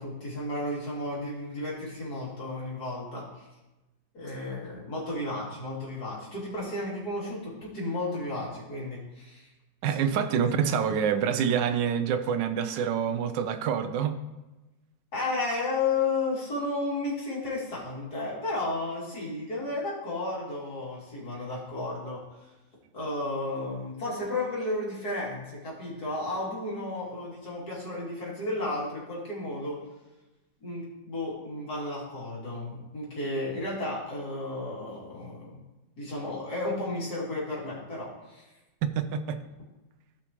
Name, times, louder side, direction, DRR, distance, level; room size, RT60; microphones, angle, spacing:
voice 1, 0.0-3.5 4.1-9.5 9.9-10.0 15.1-22.5 22.9-29.8 30.6-35.6 36.0-38.5, left 2 dB, 55° left, -5 dB, 3.2 m, -33 dB
voice 2, 9.8-14.2 38.8-39.4, right 7 dB, 80° right, 8 dB, 1.4 m, -27 dB
16.0 x 5.7 x 3.0 m, 1.1 s
omnidirectional pair, 2.0 m